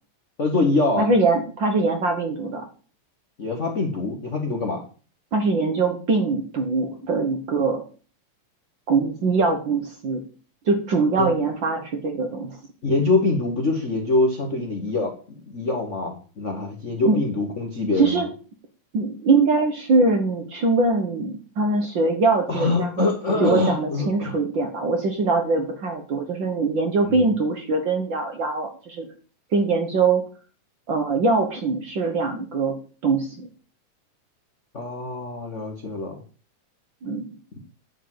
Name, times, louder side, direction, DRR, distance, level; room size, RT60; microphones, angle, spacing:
voice 1, 0.4-1.1 3.4-4.8 11.2-11.3 12.8-15.2 15.5-18.2 22.5-24.4 27.0-27.3 34.7-36.2 37.5-37.6, left 3 dB, 45° left, 1 dB, 0.9 m, -24 dB
voice 2, 1.0-2.7 5.3-7.8 8.9-10.2 10.7-12.6 17.0-17.2 18.0-18.3 18.9-23.1 23.4-29.1 29.5-30.2 30.9-33.4 37.0-37.3, right 3 dB, 55° right, 4 dB, 1.5 m, -22 dB
9.9 x 4.6 x 7.7 m, 0.39 s
omnidirectional pair, 3.3 m